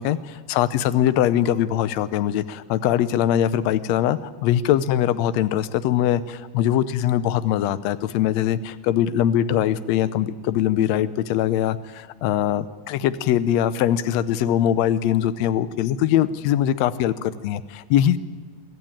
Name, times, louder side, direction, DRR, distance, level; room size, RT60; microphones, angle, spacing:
voice 1, 0.0-18.2, left 11 dB, 75° left, 14 dB, 1.7 m, -22 dB
24.0 x 14.0 x 8.8 m, 1.4 s
omnidirectional pair, 3.8 m